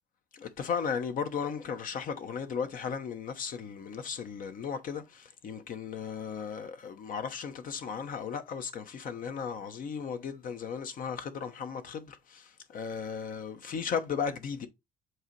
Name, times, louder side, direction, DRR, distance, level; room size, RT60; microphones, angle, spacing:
voice 1, 0.3-14.7, left 6 dB, 55° left, 0.9 m, -36 dB
7.9 x 2.8 x 4.5 m
cardioid pair, 110°, 17 cm